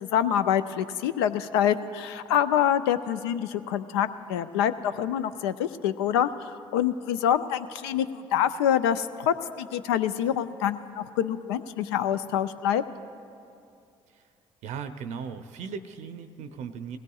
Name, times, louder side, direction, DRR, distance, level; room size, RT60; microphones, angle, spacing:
voice 1, 0.0-12.8, left 9 dB, 80° left, 12 dB, 0.4 m, -26 dB
voice 2, 14.6-17.0, right 6 dB, 65° right, 10 dB, 0.6 m, -37 dB
19.5 x 16.5 x 2.4 m, 2.5 s
hypercardioid pair, 55°, 13 cm